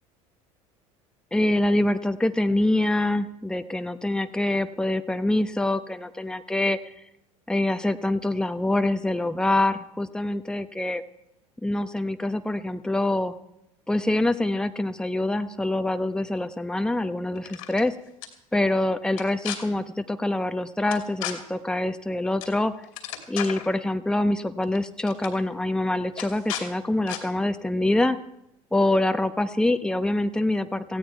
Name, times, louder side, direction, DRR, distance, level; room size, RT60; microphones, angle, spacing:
voice 1, 1.3-6.9 7.5-11.0 11.6-13.3 13.9-17.9 18.5-22.7 23.3-28.2 28.7-31.0, left 1 dB, 5° left, 9 dB, 1.0 m, -25 dB
sound 1, 17.4-17.8 18.2-18.3 19.1-19.6 20.9-21.3 22.4-22.6 22.8-23.7 24.6-24.8 25.0-25.3 26.2-26.7 27.1-27.2, left 12 dB, 70° left, 2.6 m, -34 dB
18.0 x 16.0 x 4.7 m, 0.81 s
figure-of-eight pair, 70°, 18 cm